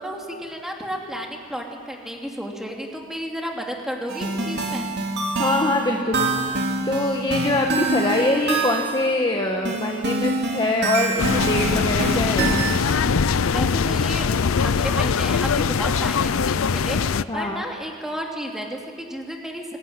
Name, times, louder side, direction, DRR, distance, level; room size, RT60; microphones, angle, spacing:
voice 1, 0.0-4.9 13.5-14.3 14.6-19.8, equal, ahead, 0 dB, 3.0 m, -32 dB
sound 1, 4.1-9.1 9.7-12.9, right 2 dB, 50° right, 2.9 m, -25 dB
voice 2, 5.4-6.3 6.8-12.6 17.3-17.6, left 2 dB, 20° left, 1 dB, 1.5 m, -23 dB
sound 2, 11.2-17.2, left 5 dB, 65° left, 0.5 m, -22 dB
23.0 x 19.5 x 9.8 m, 2.2 s
head